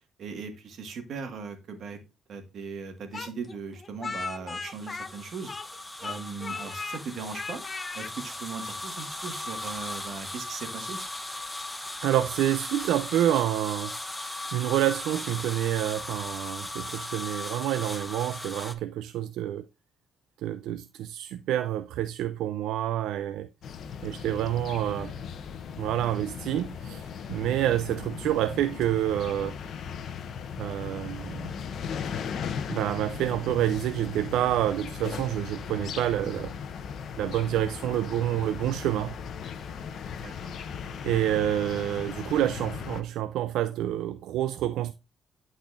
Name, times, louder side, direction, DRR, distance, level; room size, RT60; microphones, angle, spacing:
voice 1, 0.2-2.0 2.3-5.5 6.0-7.6 7.9-11.0 24.1-24.2 40.2-40.5, right 5 dB, 65° right, 1.5 m, -38 dB
Speech, 3.1-5.8 6.0-7.0 7.3-8.1, left 4 dB, 35° left, 0.4 m, -37 dB
sound 1, 4.6-18.7, left 1 dB, 10° left, 0.8 m, -38 dB
voice 2, 12.0-14.0 14.5-19.6 20.4-23.5 24.0-25.1 25.8-29.6 30.6-31.5 32.7-36.5 37.2-39.1 41.0-44.9, right 12 dB, 85° right, 0.3 m, -28 dB
sound 2, 23.6-43.0, left 7 dB, 65° left, 0.7 m, -37 dB
12.0 x 4.2 x 2.5 m
cardioid pair, 90°, 0 cm